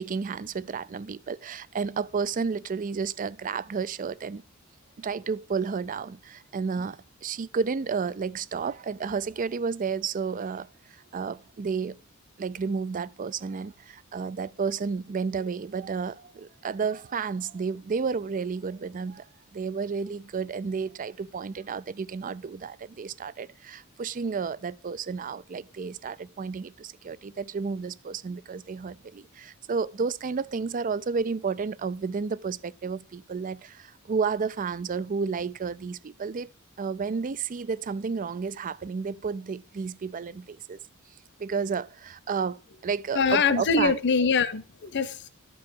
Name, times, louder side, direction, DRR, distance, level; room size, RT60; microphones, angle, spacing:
voice 1, 0.0-4.4 5.0-12.0 12.4-36.5 36.8-40.8 41.4-43.9, right 5 dB, 40° right, 0.4 m, -31 dB
voice 2, 43.1-45.3, left 5 dB, 55° left, 0.7 m, -24 dB
12.5 x 4.8 x 6.9 m
head